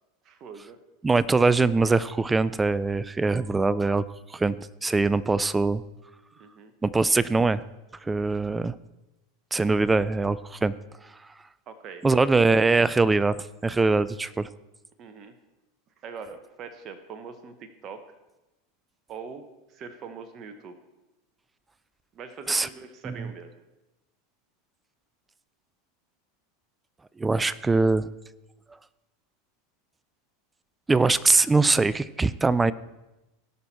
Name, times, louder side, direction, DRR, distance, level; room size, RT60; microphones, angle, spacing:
voice 1, 0.2-0.8 6.4-6.7 11.7-12.0 15.0-15.4 16.0-18.0 19.1-19.4 19.7-20.8 22.1-23.5, right 5 dB, 40° right, 8 dB, 1.2 m, -42 dB
voice 2, 1.0-4.6 4.8-5.8 6.8-7.6 8.0-8.8 9.5-10.7 12.0-13.4 13.6-14.5 22.5-22.7 23.0-23.1 27.2-28.1 30.9-32.7, right 3 dB, 15° right, 18 dB, 0.4 m, -22 dB
18.0 x 6.1 x 4.3 m, 0.98 s
hypercardioid pair, 100°, 0 cm